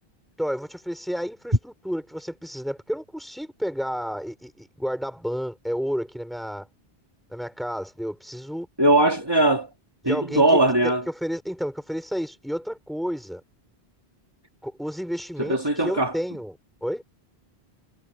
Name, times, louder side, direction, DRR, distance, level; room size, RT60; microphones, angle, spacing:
voice 1, 0.4-6.7 7.3-8.7 10.1-13.4 14.6-16.5 16.8-17.0, equal, ahead, 5.6 m, -31 dB
voice 2, 8.8-9.7 10.0-11.0 15.4-16.1, right 1 dB, 25° right, 2.4 m, -20 dB
omnidirectional pair, 1.1 m